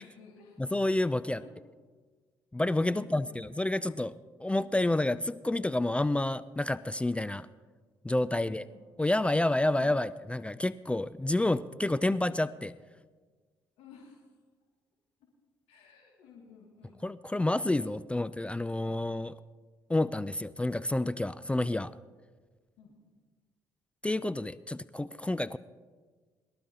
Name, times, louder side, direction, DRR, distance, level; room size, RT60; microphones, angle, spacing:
voice 1, 0.0-0.6 1.4-1.5 2.9-3.5 4.6-4.8 8.3-8.8 13.8-14.2 15.7-17.0 22.8-22.9, left 6 dB, 70° left, -3 dB, 2.2 m, -53 dB
voice 2, 0.6-1.4 2.5-7.5 8.0-8.6 9.0-12.7 17.0-19.3 19.9-21.9 24.0-25.6, left 2 dB, 10° left, 15 dB, 0.4 m, -29 dB
22.5 x 12.0 x 2.8 m, 1.5 s
hypercardioid pair, 50°, 11 cm